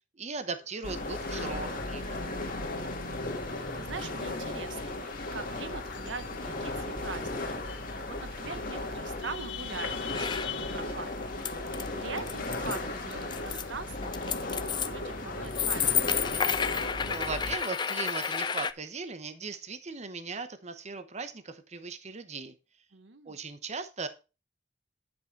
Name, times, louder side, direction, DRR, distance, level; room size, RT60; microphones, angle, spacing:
voice 1, 0.1-2.4 16.6-22.5 23.2-24.1, right 4 dB, 40° right, 0.9 m, -38 dB
sound 1, 0.6-15.7, left 7 dB, 75° left, 0.8 m, -47 dB
sound 2, 0.8-17.6, left 2 dB, 50° left, 1.7 m, -36 dB
voice 2, 3.7-11.4 11.7-16.2 22.9-23.4, right 4 dB, 80° right, 0.9 m, -43 dB
sound 3, 10.1-10.5 10.8-11.9 12.2-12.8 13.1-13.6 13.9-14.9 15.5-18.7, left 7 dB, 25° left, 0.4 m, -30 dB
9.7 x 5.5 x 4.5 m
head